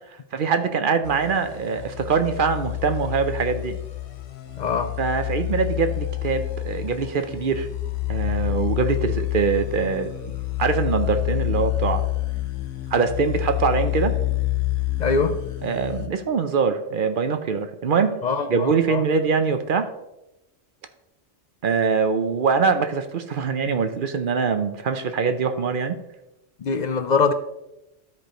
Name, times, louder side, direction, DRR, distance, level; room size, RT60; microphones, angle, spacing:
voice 1, 0.3-3.7 5.0-7.7 8.1-10.1 10.6-12.0 12.9-14.1 15.6-18.1 18.5-19.9 21.6-26.0, right 5 dB, 55° right, 8 dB, 0.7 m, -23 dB
sound 1, 1.0-16.1, left 18 dB, 85° left, 1.1 m, -28 dB
voice 2, 4.6-4.9 15.0-15.4 18.2-19.0 26.6-27.3, left 4 dB, 60° left, 8 dB, 0.5 m, -23 dB
13.5 x 4.9 x 3.0 m, 0.91 s
omnidirectional pair, 1.2 m